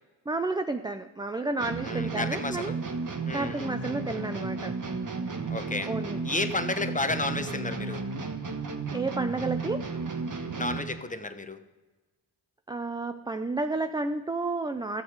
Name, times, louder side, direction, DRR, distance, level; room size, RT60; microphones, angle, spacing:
voice 1, 0.3-2.7 3.3-4.7 5.9-6.2 8.9-9.9 12.7-15.0, right 3 dB, 10° right, 8 dB, 0.4 m, -31 dB
sound 1, 1.6-11.0, right 4 dB, 45° right, 1.3 m, -33 dB
voice 2, 1.8-2.8 3.3-3.7 5.5-5.9 6.2-8.1 10.6-11.6, left 2 dB, 20° left, 9 dB, 0.9 m, -32 dB
13.0 x 7.3 x 4.8 m, 1.2 s
cardioid pair, 60°, 43 cm